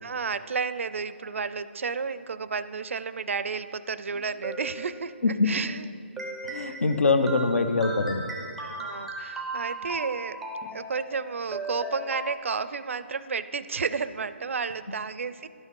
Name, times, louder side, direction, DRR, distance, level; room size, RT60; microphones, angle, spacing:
voice 1, 0.0-5.9 6.5-6.8 8.6-10.4 10.7-15.5, right 5 dB, 80° right, 14 dB, 0.4 m, -32 dB
sound 1, 4.1-5.5 6.2-12.3, right 2 dB, ahead, 0.5 m, -37 dB
voice 2, 6.4-8.3, left 3 dB, 80° left, 8 dB, 0.9 m, -23 dB
11.5 x 6.3 x 5.3 m, 2.3 s
hypercardioid pair, 165°, 7 cm